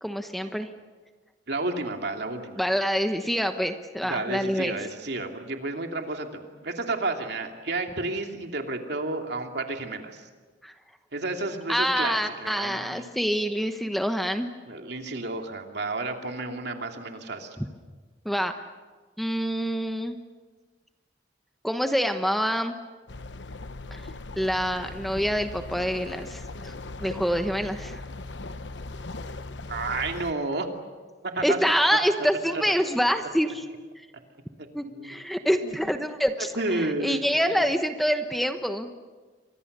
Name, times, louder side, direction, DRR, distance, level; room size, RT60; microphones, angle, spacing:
voice 1, 0.0-0.7 2.6-4.8 10.6-10.7 11.7-14.5 17.6-17.7 18.2-18.5 19.2-20.2 21.6-22.8 23.9-24.1 24.4-26.7 27.0-28.0 31.4-33.7 34.0-34.1 34.7-38.9, equal, ahead, 7 dB, 1.1 m, -26 dB
voice 2, 1.5-2.6 4.0-10.2 11.1-13.0 14.7-17.6 29.7-30.7 31.3-31.6 31.9-32.0 32.5-32.6 34.6-34.7 34.9-35.1 35.6-35.8 36.6-37.6, right 2 dB, 65° right, 3 dB, 2.8 m, -31 dB
sound 1, 23.1-30.3, left 2 dB, 75° left, 1.1 m, -39 dB
30.0 x 25.0 x 6.8 m, 1.4 s
head